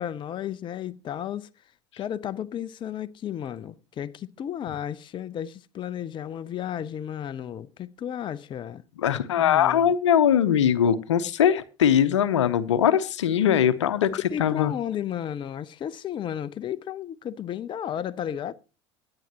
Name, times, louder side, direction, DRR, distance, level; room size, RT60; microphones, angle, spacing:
voice 1, 0.0-1.5 2.0-8.8 9.4-9.9 14.3-18.5, left 10 dB, 30° left, 0.6 m, -33 dB
voice 2, 9.0-14.1 14.4-14.7, left 9 dB, 75° left, 0.8 m, -21 dB
16.5 x 9.8 x 2.9 m
hypercardioid pair, 75°, 15 cm